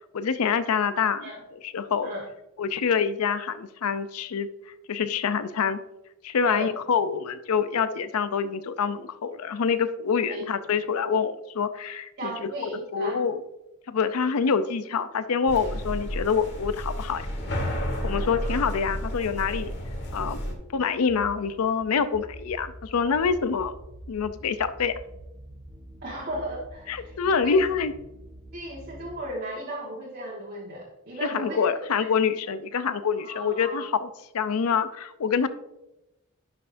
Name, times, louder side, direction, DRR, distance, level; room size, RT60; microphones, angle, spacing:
voice 1, 0.1-1.3 1.7-2.1 2.6-4.5 4.9-5.8 6.2-13.4 13.9-17.2 18.0-19.7 20.1-20.4 20.7-23.7 24.1-24.9 26.9-27.9 31.2-33.9 34.3-35.5, left 6 dB, 85° left, 12 dB, 0.5 m, -26 dB
voice 2, 6.4-6.7 10.3-10.5 12.2-13.2 18.4-18.7 26.0-27.6 28.5-31.7 32.0-32.1 33.2-33.8, right 1 dB, 45° right, -5 dB, 1.3 m, -36 dB
sound 1, 15.5-20.5, equal, 50° left, 1.4 m, -31 dB
sound 2, 18.7-29.3, equal, 20° right, 1.4 m, -46 dB
10.5 x 5.7 x 2.5 m, 0.91 s
head